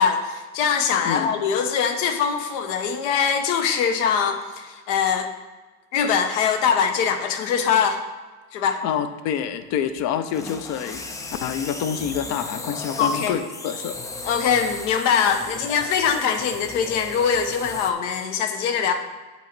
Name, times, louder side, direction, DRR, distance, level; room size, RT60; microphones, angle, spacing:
voice 1, 0.0-5.3 5.9-8.0 8.5-8.8 13.0-13.4 14.2-18.9, left 7 dB, 70° left, 7 dB, 1.1 m, -22 dB
voice 2, 8.8-14.0, left 8 dB, 45° left, 10 dB, 0.7 m, -27 dB
sound 1, 9.9-17.9, left 3 dB, 10° left, 0.3 m, -36 dB
8.2 x 4.0 x 6.0 m, 1.3 s
supercardioid pair, 130°, 38 cm